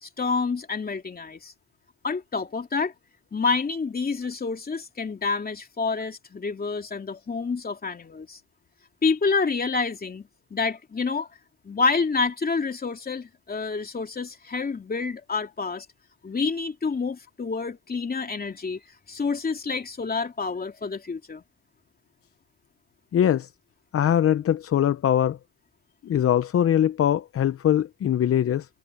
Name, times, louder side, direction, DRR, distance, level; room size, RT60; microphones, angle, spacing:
voice 1, 0.0-1.5 2.0-2.9 3.3-8.4 9.0-11.3 11.6-15.9 16.2-18.8 19.1-21.4, left 4 dB, 30° left, 3.0 m, -28 dB
voice 2, 23.1-23.5 23.9-25.4 26.0-28.7, left 10 dB, 50° left, 0.8 m, -22 dB
cardioid pair, 90°, 30 cm